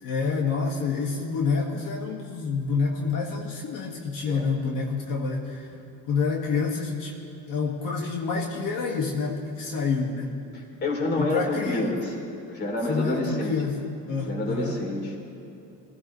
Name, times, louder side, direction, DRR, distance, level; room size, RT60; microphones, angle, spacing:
voice 1, 0.0-5.8 6.1-7.1 7.5-10.4 11.2-11.9 12.9-13.8 14.1-14.8, left 4 dB, 75° left, -1 dB, 1.9 m, -28 dB
voice 2, 10.5-13.5 14.2-15.1, left 2 dB, 30° left, -1 dB, 3.2 m, -29 dB
26.5 x 17.0 x 3.2 m, 2.7 s
cardioid pair, 175°, 33 cm